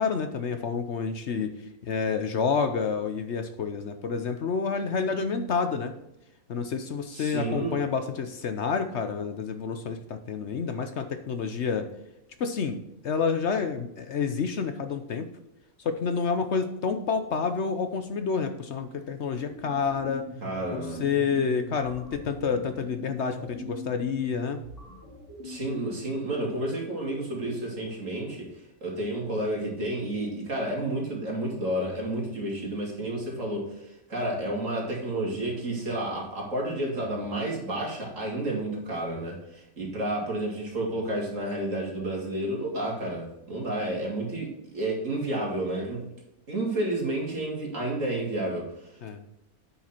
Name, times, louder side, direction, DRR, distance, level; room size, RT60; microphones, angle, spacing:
voice 1, 0.0-1.5 1.8-5.9 6.5-11.9 12.4-12.8 13.0-15.3 15.8-20.2 20.7-24.6 49.0-49.2, left 5 dB, 60° left, 8 dB, 1.0 m, -29 dB
voice 2, 7.1-7.8 20.4-21.0 25.4-28.5 28.8-46.1 46.5-48.9, right 1 dB, 65° right, -2 dB, 3.0 m, -31 dB
sound 1, 19.3-26.3, left 1 dB, 15° left, 2.9 m, -41 dB
9.2 x 5.8 x 4.4 m, 0.87 s
omnidirectional pair, 1.5 m